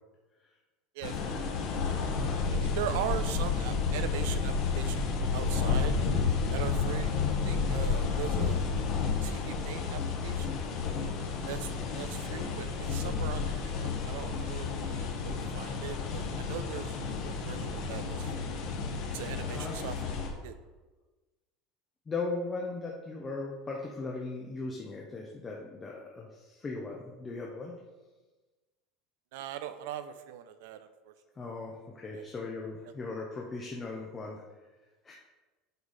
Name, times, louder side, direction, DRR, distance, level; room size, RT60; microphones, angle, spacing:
sound 1, 1.0-20.3, left 5 dB, 50° left, 1.4 m, -31 dB
voice 1, 2.5-5.0 5.3-6.0 6.5-7.2 7.4-8.7 9.2-10.6 11.4-17.0 17.2-18.5 19.1-20.5 29.3-31.1 32.1-32.2, right 10 dB, 70° right, 11 dB, 0.6 m, -40 dB
voice 2, 19.4-19.8 22.1-27.8 31.4-34.4 35.0-35.1, left 3 dB, 15° left, -2 dB, 0.7 m, -38 dB
8.0 x 5.3 x 4.1 m, 1.2 s
cardioid pair, 180°, 0 cm